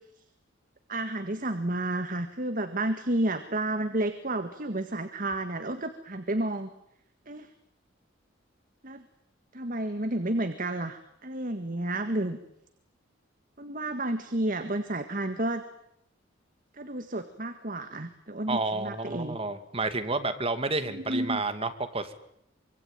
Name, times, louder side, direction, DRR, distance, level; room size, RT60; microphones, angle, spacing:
voice 1, 0.9-6.7 7.3-7.5 8.8-9.0 9.5-12.4 13.6-15.6 16.8-19.4 20.9-21.4, right 1 dB, 45° right, 9 dB, 1.9 m, -31 dB
voice 2, 18.5-22.1, right 3 dB, 30° right, 9 dB, 2.4 m, -30 dB
25.5 x 25.0 x 9.2 m, 0.77 s
head